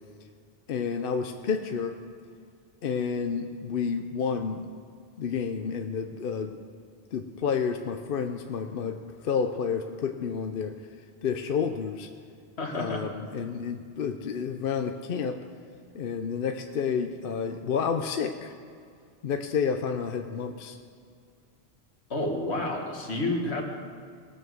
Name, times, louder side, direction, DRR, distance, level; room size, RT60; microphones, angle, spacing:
voice 1, 0.7-2.0 2.8-4.7 5.2-6.6 7.1-10.8 11.2-12.1 12.7-15.4 15.9-18.5 19.2-20.8, left 6 dB, 60° left, 6 dB, 0.8 m, -30 dB
voice 2, 12.6-13.0 22.1-23.6, left 2 dB, 80° left, 1 dB, 2.0 m, -29 dB
19.5 x 7.2 x 6.3 m, 2.2 s
omnidirectional pair, 1.1 m